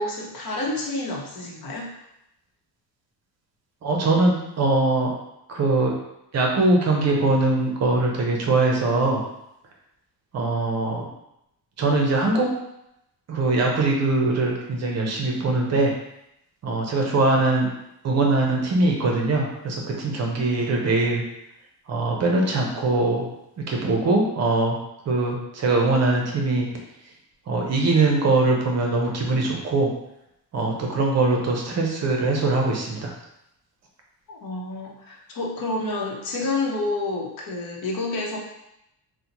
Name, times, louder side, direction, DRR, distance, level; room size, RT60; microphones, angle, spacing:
voice 1, 0.0-1.9 34.3-38.4, left 2 dB, 60° left, -2 dB, 0.8 m, -29 dB
voice 2, 3.8-5.1 5.5-5.9 6.3-9.2 10.3-11.0 11.8-12.5 13.3-15.9 16.6-17.7 18.0-21.2 21.9-23.2 23.7-24.8 25.1-26.7 27.5-29.9 30.5-33.1, right 2 dB, 40° right, 0 dB, 0.6 m, -22 dB
4.0 x 2.1 x 2.9 m, 0.83 s
cardioid pair, 150°, 39 cm